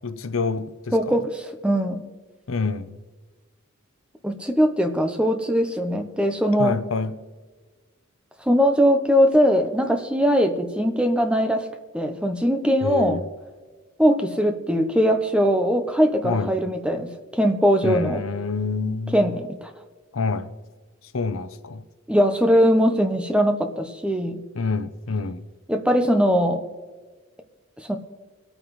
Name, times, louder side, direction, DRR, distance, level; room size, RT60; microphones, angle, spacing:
voice 1, 0.0-1.2 2.5-3.0 6.6-7.2 12.8-13.2 16.2-16.5 17.8-19.3 20.1-20.5 21.1-21.8 24.5-25.4, left 4 dB, 85° left, 0.7 m, -27 dB
voice 2, 0.9-2.0 4.2-6.8 8.5-11.7 11.9-13.2 14.0-18.2 19.1-19.7 22.1-24.4 25.7-26.6 27.9-28.0, equal, 5° right, 0.9 m, -21 dB
24.0 x 9.0 x 3.2 m
head